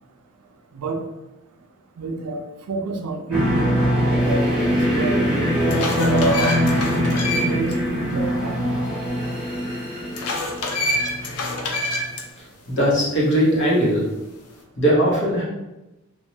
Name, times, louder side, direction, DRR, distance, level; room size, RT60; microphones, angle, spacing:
voice 1, 2.0-3.8 4.1-5.2 5.7-6.6 7.3-8.6, right 3 dB, 80° right, 4 dB, 0.4 m, -28 dB
sound 1, 3.3-12.0, equal, 5° right, 0.9 m, -22 dB
sound 2, 4.7-4.8 5.4-7.7 8.1-8.2 10.1-12.2, left 2 dB, 80° left, 0.5 m, -27 dB
voice 2, 12.7-14.1 14.8-15.4, equal, 55° left, -4 dB, 0.9 m, -19 dB
3.0 x 2.2 x 2.7 m, 0.97 s
head